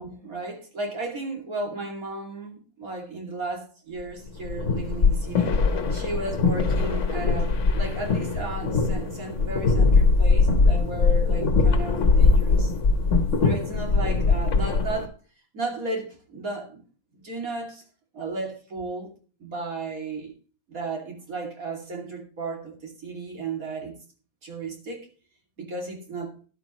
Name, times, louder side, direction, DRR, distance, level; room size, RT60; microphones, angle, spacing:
voice 1, 0.0-5.6 5.9-12.7 13.4-15.1 15.5-16.8 17.1-17.8 18.1-19.1 19.4-20.3 20.7-24.0 24.4-25.1 25.6-26.4, right 3 dB, 75° right, 3.1 m, -34 dB
sound 1, 4.3-15.1, left 4 dB, 60° left, 1.4 m, -21 dB
13.0 x 11.0 x 3.0 m
omnidirectional pair, 1.5 m